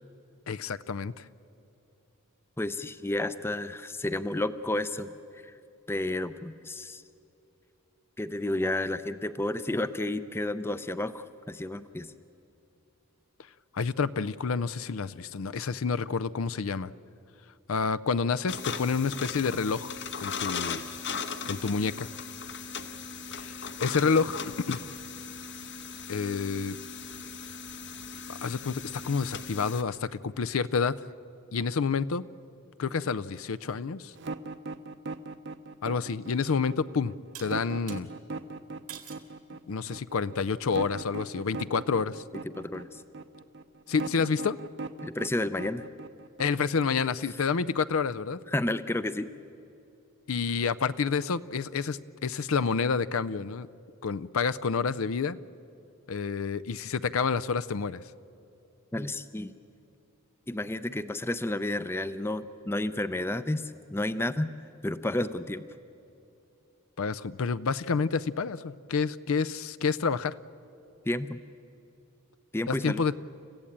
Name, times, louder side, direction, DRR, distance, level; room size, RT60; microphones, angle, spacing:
voice 1, 0.5-1.3 13.7-16.9 17.7-19.9 20.2-20.8 21.5-22.1 23.3-24.3 24.7-24.8 26.1-26.8 28.3-30.9 31.5-32.2 32.8-34.1 35.8-37.1 37.4-38.1 39.7-42.2 43.9-44.6 46.4-48.4 50.3-53.7 54.0-55.4 56.1-58.0 67.0-70.4 72.7-73.1, left 5 dB, 75° left, 16 dB, 0.5 m, -29 dB
voice 2, 2.6-5.5 5.9-7.0 8.2-12.1 42.6-43.0 45.0-45.9 48.5-49.3 58.9-59.5 60.5-64.5 64.8-65.7 71.1-71.4 72.5-73.0, left 1 dB, 10° left, 13 dB, 0.5 m, -31 dB
sound 1, 18.5-29.8, left 5 dB, 55° left, 1.0 m, -38 dB
sound 2, 34.2-47.1, right 3 dB, 55° right, 0.8 m, -39 dB
sound 3, 37.3-38.0 38.9-39.3 39.9-40.3, right 11 dB, 85° right, 2.2 m, -45 dB
30.0 x 15.0 x 8.8 m, 2.8 s
head